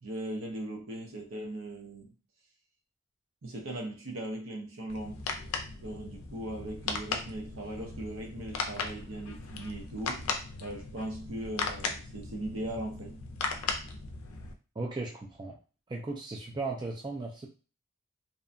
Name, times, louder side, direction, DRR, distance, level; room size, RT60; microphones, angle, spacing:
voice 1, 0.0-2.1 3.4-5.2 5.8-10.3 10.6-13.2, right 1 dB, 70° right, 1 dB, 0.7 m, -39 dB
sound 1, 4.9-14.5, left 4 dB, 85° left, 0.4 m, -37 dB
voice 2, 14.8-15.6 15.9-17.5, right 3 dB, 20° right, -1 dB, 0.4 m, -36 dB
2.7 x 2.2 x 2.5 m, 0.35 s
head